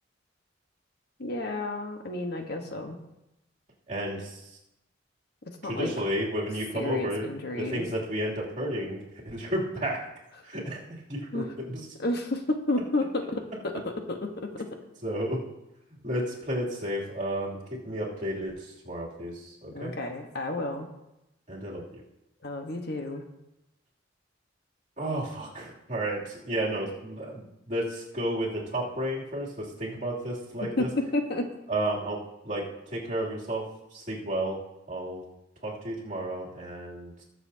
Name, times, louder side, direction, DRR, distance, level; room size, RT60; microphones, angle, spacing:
voice 1, 1.2-3.0 5.6-5.9 6.7-7.8 11.3-11.5 12.0-13.7 14.1-14.7 19.7-20.9 22.4-23.2 30.8-31.5, left 2 dB, 60° left, 4 dB, 1.2 m, -31 dB
voice 2, 3.9-4.6 5.6-7.3 7.6-9.0 9.2-10.0 10.4-10.8 11.1-11.9 15.0-15.4 16.0-19.9 21.5-22.0 25.0-30.9 31.7-32.2 32.4-33.6 33.9-34.6 34.9-35.2 35.6-37.2, right 1 dB, 40° right, -4 dB, 2.8 m, -32 dB
20.5 x 6.9 x 2.8 m, 0.90 s
head